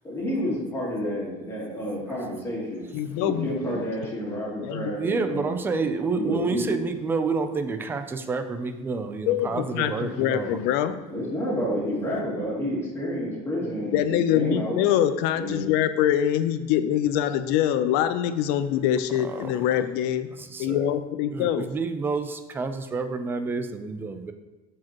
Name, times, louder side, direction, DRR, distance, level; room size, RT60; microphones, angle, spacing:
voice 1, 0.0-2.9 3.2-5.6 6.2-6.8 11.1-14.8 15.3-15.7, equal, 15° left, -6 dB, 2.4 m, -29 dB
voice 2, 2.9-3.8 4.6-4.9 9.3-11.0 13.8-20.3 20.6-21.7, left 11 dB, 75° left, 10 dB, 0.6 m, -24 dB
voice 3, 5.0-10.6 19.2-19.5 20.3-20.9 21.3-24.3, right 4 dB, 15° right, 7 dB, 0.4 m, -29 dB
13.5 x 4.9 x 3.0 m, 1.1 s
cardioid pair, 180°, 17 cm